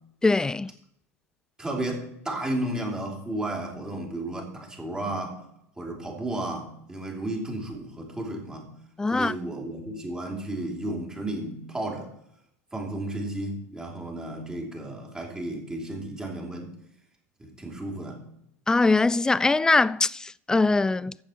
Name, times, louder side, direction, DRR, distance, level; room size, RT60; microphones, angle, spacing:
voice 1, 0.2-0.7 9.0-9.3 18.7-21.2, left 3 dB, 10° left, 0.3 m, -22 dB
voice 2, 1.6-5.4 5.8-8.7 9.1-12.1 12.7-16.7 17.4-18.2, right 1 dB, 10° right, 3.5 m, -33 dB
14.5 x 8.7 x 4.5 m
figure-of-eight pair, 80°, 8 cm